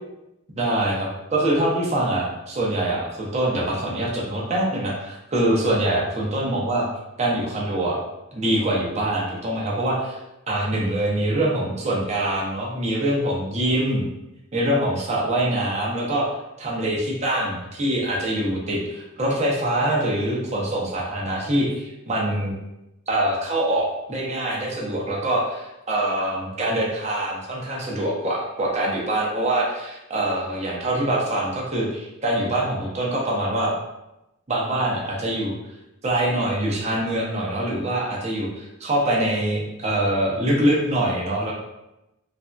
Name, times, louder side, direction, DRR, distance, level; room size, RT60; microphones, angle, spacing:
voice 1, 0.6-6.9 7.2-8.0 8.3-10.2 10.5-14.0 14.5-16.3 16.6-22.5 23.1-33.7 34.5-35.5 36.0-41.5, right 1 dB, 35° right, -3 dB, 0.7 m, -24 dB
3.3 x 2.5 x 2.2 m, 0.92 s
head